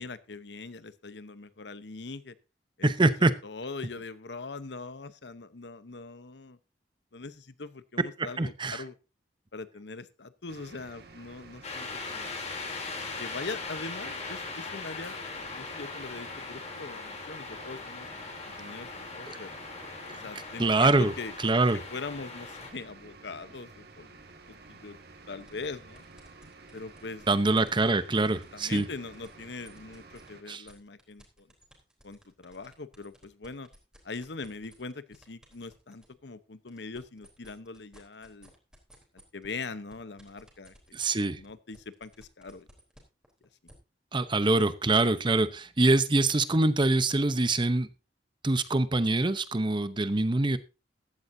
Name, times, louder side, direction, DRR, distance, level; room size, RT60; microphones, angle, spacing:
voice 1, 0.0-2.4 2.8-2.9 3.4-6.6 7.1-8.9 9.5-12.4 13.2-18.1 18.4-19.5 20.1-21.3 21.7-24.2 24.5-25.0 25.3-26.0 26.7-27.3 28.5-31.5 32.0-33.7 34.0-38.5 39.3-40.7 41.4-42.7 43.4-43.5, left 4 dB, 70° left, 14 dB, 0.9 m, -41 dB
voice 2, 2.8-3.3 8.4-8.8 19.3-19.4 20.6-21.1 21.4-21.8 27.3-28.8 30.5-30.6 40.9-41.4 44.1-47.9 48.4-50.6, right 2 dB, 25° right, 14 dB, 0.8 m, -24 dB
sound 1, 10.5-30.4, right 3 dB, 60° right, 2.0 m, -52 dB
sound 2, 11.6-22.7, left 4 dB, 40° left, 3.3 m, -40 dB
sound 3, 25.4-30.3 30.7-36.1 36.5-43.7, equal, 5° right, 3.6 m, -57 dB
15.0 x 12.5 x 2.7 m, 0.29 s
head